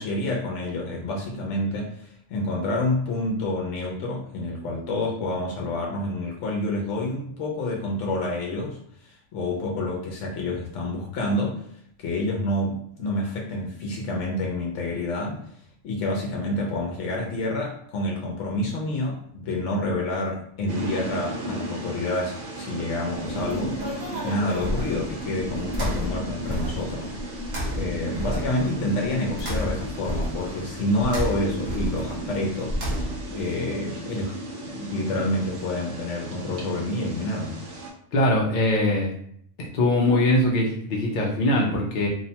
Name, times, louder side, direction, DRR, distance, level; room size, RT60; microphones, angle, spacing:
voice 1, 0.0-11.6 12.0-15.4 15.8-27.4 27.7-32.8 33.3-34.3 34.6-37.6, left 1 dB, 75° left, -1 dB, 0.9 m, -28 dB
sound 1, 20.7-37.9, right 1 dB, 75° right, 1.0 m, -35 dB
sound 2, 23.2-33.4, equal, 50° right, 0.8 m, -32 dB
voice 2, 38.1-39.1 39.6-42.1, left 1 dB, 60° left, -2 dB, 0.5 m, -22 dB
2.7 x 2.1 x 2.7 m, 0.67 s
omnidirectional pair, 1.3 m